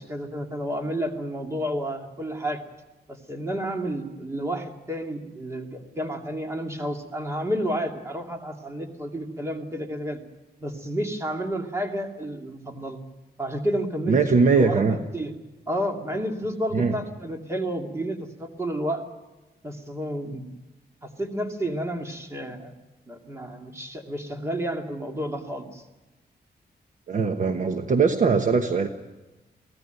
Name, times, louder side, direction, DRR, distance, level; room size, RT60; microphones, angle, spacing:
voice 1, 0.0-2.6 3.1-10.2 10.6-13.0 13.4-14.3 14.6-15.3 15.7-19.0 19.6-20.5 21.0-22.7 23.1-25.8, equal, 15° right, 3 dB, 2.4 m, -31 dB
voice 2, 14.1-15.0 16.7-17.0 27.1-28.9, right 5 dB, 50° right, 6 dB, 1.2 m, -21 dB
24.0 x 17.0 x 9.2 m, 1.1 s
wide cardioid pair, 165°, 17 cm